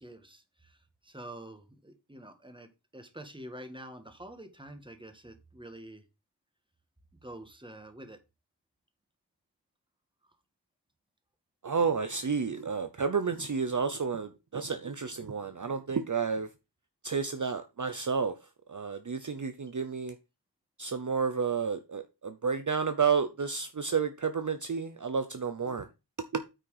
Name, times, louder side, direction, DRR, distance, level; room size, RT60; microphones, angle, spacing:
voice 1, 0.0-6.1 7.1-8.2 10.2-10.3, right 1 dB, 10° right, 1.6 m, -47 dB
voice 2, 11.6-16.5 17.0-18.3 18.7-20.2 20.8-25.9 26.2-26.4, right 5 dB, 45° right, 0.7 m, -31 dB
8.9 x 4.4 x 4.9 m
wide cardioid pair, 50°, 43 cm